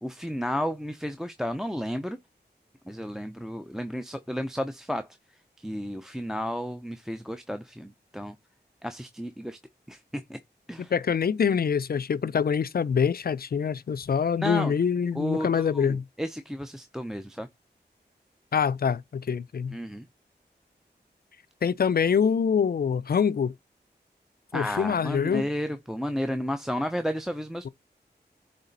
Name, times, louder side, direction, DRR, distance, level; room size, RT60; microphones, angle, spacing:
voice 1, 0.0-2.2 2.9-5.1 5.6-8.3 8.8-9.6 9.9-10.4 10.7-10.9 14.4-14.7 15.1-17.5 19.7-20.1 24.5-27.7, equal, 5° right, 0.5 m, -32 dB
voice 2, 10.9-16.0 18.5-19.8 21.6-23.5 24.5-25.5 27.6-27.7, left 7 dB, 60° left, 0.4 m, -25 dB
8.1 x 3.3 x 3.9 m
wide cardioid pair, 55°, 18 cm